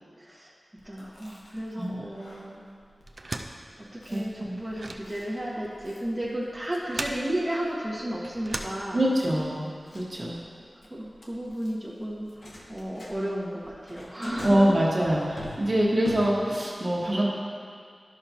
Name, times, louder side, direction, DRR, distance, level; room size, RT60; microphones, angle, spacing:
voice 1, 0.2-0.5 0.8-2.7 3.8-9.0 10.9-14.6, right 1 dB, 5° right, -5 dB, 1.4 m, -33 dB
Chewing mastication, 0.8-16.7, left 1 dB, 75° left, 1.1 m, -47 dB
sound 1, 3.0-9.4, right 2 dB, 55° right, 0.5 m, -39 dB
voice 2, 4.1-4.6 8.9-9.7 9.9-10.4 14.4-17.3, right 1 dB, 40° right, -5 dB, 1.3 m, -24 dB
12.0 x 5.9 x 2.8 m, 2.1 s
wide cardioid pair, 75°, 0 cm